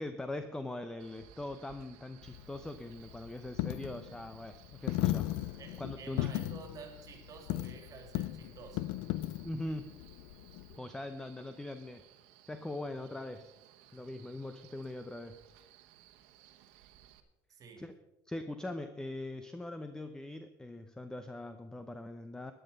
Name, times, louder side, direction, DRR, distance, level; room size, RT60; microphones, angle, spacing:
voice 1, 0.0-5.3 5.8-6.3 9.4-9.9 10.8-12.0 12.5-13.5 13.9-15.4 17.8-17.9 18.3-22.5, left 1 dB, 5° left, 9 dB, 0.7 m, -41 dB
Male speech man speaking, 1.0-17.2, right 12 dB, 90° right, 1.2 m, -60 dB
Coin (dropping), 2.2-10.8, left 15 dB, 80° left, 0.5 m, -37 dB
voice 2, 5.6-8.9 17.5-17.9, right 5 dB, 40° right, 5 dB, 2.7 m, -51 dB
13.0 x 10.0 x 5.3 m, 0.99 s
cardioid pair, 115°, 9 cm